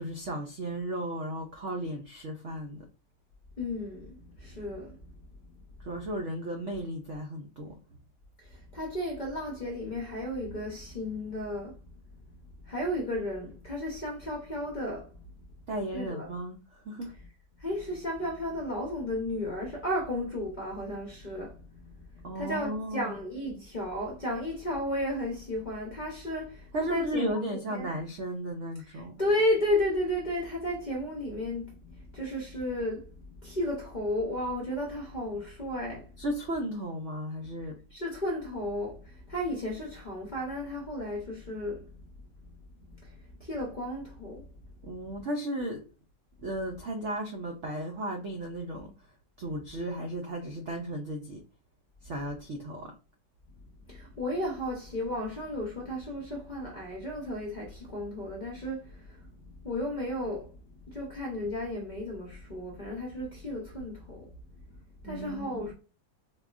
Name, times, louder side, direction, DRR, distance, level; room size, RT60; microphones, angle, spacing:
voice 1, 0.0-2.8 5.8-7.7 15.7-17.1 22.2-23.2 26.7-29.2 36.2-37.8 44.8-45.8 46.4-48.9 49.4-51.4 52.0-52.9 65.0-65.7, right 1 dB, 75° right, 0.6 m, -35 dB
voice 2, 3.6-5.1 8.4-11.8 12.6-15.3 15.9-16.3 17.2-17.3 17.6-27.9 28.9-36.1 37.9-41.9 42.8-44.5 44.9-45.0 53.9-64.3 65.0-65.7, left 1 dB, 40° left, 0.6 m, -34 dB
4.7 x 2.2 x 2.4 m
omnidirectional pair, 1.9 m